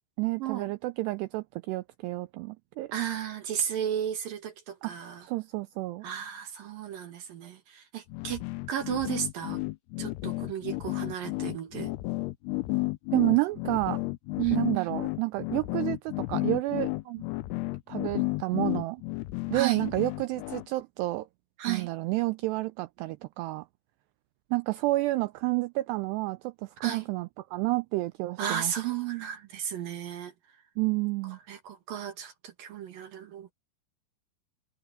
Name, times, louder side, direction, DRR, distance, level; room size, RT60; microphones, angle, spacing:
voice 1, 0.2-2.9 4.8-4.9 5.2-6.1 13.1-14.0 14.5-16.9 17.9-19.0 19.5-21.3 21.7-23.7 24.5-28.7 30.8-31.4, right 21 dB, 85° right, 2.4 m, -30 dB
voice 2, 2.9-5.2 6.0-8.4 8.7-9.6 10.0-11.9 14.4-14.9 17.1-17.2 19.5-19.8 21.6-21.9 26.8-27.1 28.4-30.3 31.5-33.5, right 10 dB, 60° right, 2.9 m, -33 dB
sound 1, 8.1-20.7, left 22 dB, 80° left, 2.6 m, -32 dB
omnidirectional pair, 5.3 m